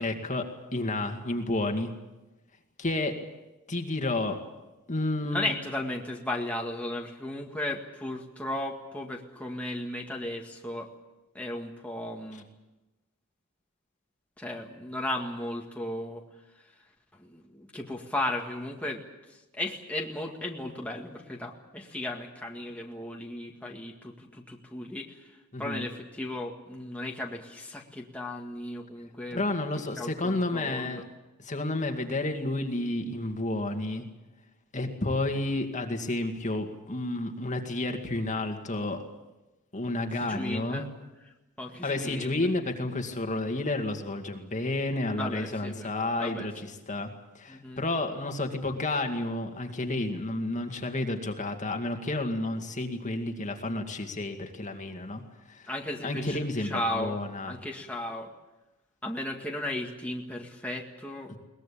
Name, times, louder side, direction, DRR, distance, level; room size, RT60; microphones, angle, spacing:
voice 1, 0.0-1.9 2.8-3.2 3.7-4.4 4.9-5.4 25.5-25.9 29.3-31.0 31.4-34.1 34.7-39.0 39.7-40.8 41.8-47.1 47.3-55.2 55.5-55.7 56.0-57.5, left 2 dB, 35° left, 4 dB, 2.2 m, -31 dB
voice 2, 5.2-10.9 11.3-12.4 14.4-16.2 17.2-19.0 19.3-29.4 30.0-31.0 40.2-40.9 41.2-42.5 45.2-45.9 46.2-46.5 47.5-47.8 55.7-57.2 57.5-58.3 59.0-61.3, left 1 dB, 5° left, -1 dB, 1.9 m, -35 dB
22.0 x 19.5 x 8.5 m, 1.0 s
head